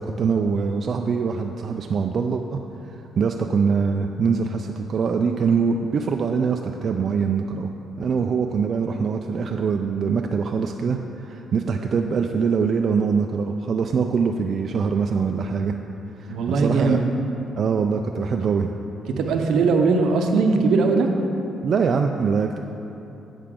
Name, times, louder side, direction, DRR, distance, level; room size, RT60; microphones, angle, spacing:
voice 1, 0.0-7.7 8.0-15.7 16.2-17.0 17.6-18.7 21.6-22.6, right 5 dB, 55° right, 3 dB, 0.3 m, -23 dB
voice 2, 16.3-17.1 19.2-21.1, right 4 dB, 80° right, 4 dB, 0.7 m, -20 dB
8.0 x 6.7 x 3.7 m, 2.9 s
cardioid pair, 90°, 0 cm